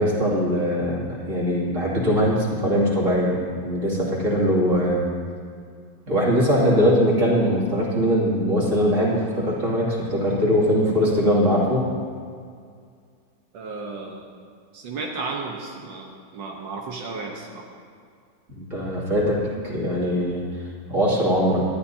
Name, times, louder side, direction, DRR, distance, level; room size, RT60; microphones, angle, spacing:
voice 1, 0.0-5.0 6.1-11.9 18.5-20.4 20.9-21.7, equal, 40° right, -5 dB, 3.0 m, -21 dB
voice 2, 13.5-14.3 14.7-17.7, right 3 dB, 85° right, 0 dB, 1.9 m, -33 dB
18.5 x 12.5 x 2.8 m, 2.2 s
omnidirectional pair, 2.0 m